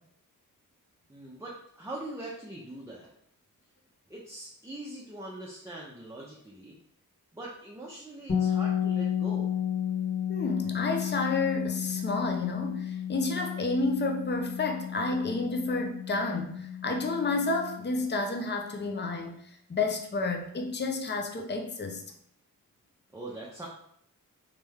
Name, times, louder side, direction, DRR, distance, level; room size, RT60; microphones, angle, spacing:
voice 1, 1.1-3.1 4.1-6.8 7.3-9.6 23.1-23.7, right 1 dB, 10° right, -4 dB, 0.7 m, -42 dB
sound 1, 8.3-18.0, left 9 dB, 55° left, 1.4 m, -32 dB
voice 2, 10.3-19.4 19.7-22.0, left 3 dB, 30° left, 3 dB, 0.7 m, -30 dB
3.3 x 3.2 x 3.5 m, 0.70 s
cardioid pair, 55°, 34 cm